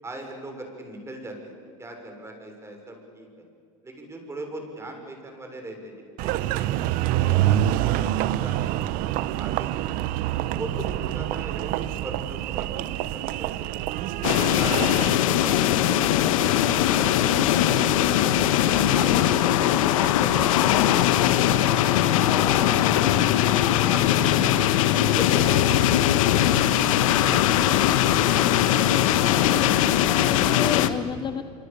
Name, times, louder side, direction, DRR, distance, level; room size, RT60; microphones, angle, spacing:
voice 1, 0.0-1.5 1.8-3.5 3.8-6.7 7.1-9.9 10.5-12.7 12.9-14.0 14.4-17.8 18.1-21.1 21.4-23.4 23.8-24.6 25.1-26.6 27.0-28.0, right 1 dB, 15° right, 3 dB, 6.5 m, -39 dB
Engine, 6.2-15.2, right 13 dB, 55° right, 1.0 m, -26 dB
sound 1, 14.2-30.9, left 11 dB, 80° left, 1.4 m, -20 dB
voice 2, 30.2-31.4, left 7 dB, 25° left, 10 dB, 1.1 m, -32 dB
27.0 x 24.5 x 7.0 m, 2.3 s
supercardioid pair, 110°, 17 cm